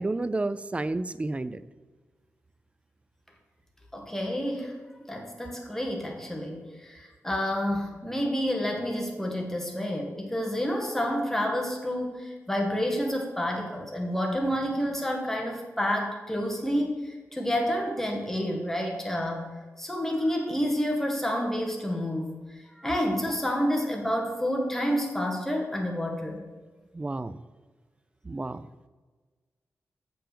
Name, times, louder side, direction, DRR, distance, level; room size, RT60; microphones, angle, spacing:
voice 1, 0.0-1.6 26.9-27.4 28.2-28.7, right 2 dB, 25° right, 14 dB, 0.4 m, -31 dB
voice 2, 3.9-4.8 5.1-19.5 19.8-22.3 22.8-26.5, equal, 5° left, 1 dB, 1.9 m, -29 dB
7.2 x 5.7 x 6.8 m, 1.4 s
cardioid pair, 75°, 5 cm